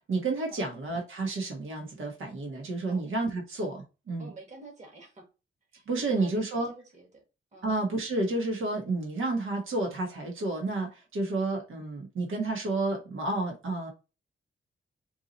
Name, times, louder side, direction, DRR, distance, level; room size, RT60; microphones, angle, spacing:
voice 1, 0.1-4.3 5.9-6.7 7.6-13.9, right 2 dB, 85° right, 1.4 m, -30 dB
voice 2, 4.2-5.3 5.7-7.2 7.5-7.7, right 2 dB, 35° right, 1.6 m, -48 dB
4.7 x 2.8 x 4.1 m
wide cardioid pair, 155°, 20 cm